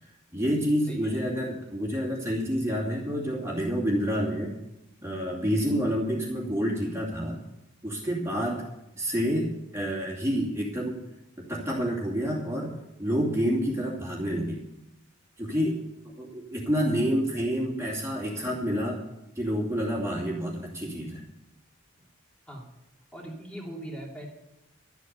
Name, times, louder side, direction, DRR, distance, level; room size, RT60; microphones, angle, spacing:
voice 1, 0.3-4.5 5.0-7.4 7.8-8.6 9.0-11.0 11.4-12.7 13.0-14.6 15.4-19.0 19.4-21.2, equal, 15° right, -3 dB, 2.6 m, -28 dB
voice 2, 0.9-1.2 22.0-22.1 22.5-22.7 23.1-24.3, right 1 dB, 5° left, -2 dB, 2.9 m, -40 dB
12.5 x 8.4 x 8.1 m, 0.89 s
head